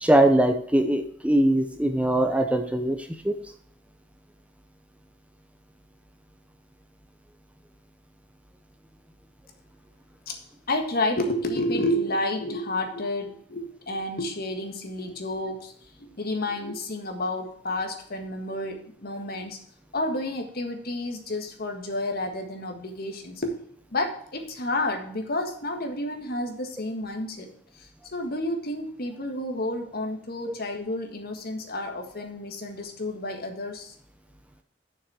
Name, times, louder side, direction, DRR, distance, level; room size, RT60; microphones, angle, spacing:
voice 1, 0.0-3.0 3.2-3.4, right 1 dB, 5° right, 7 dB, 0.6 m, -21 dB
voice 2, 10.7-15.7 16.0-19.6 19.9-23.5 23.9-27.5 27.7-33.9, left 1 dB, 55° left, 3 dB, 1.7 m, -30 dB
7.1 x 6.5 x 6.2 m, 0.62 s
head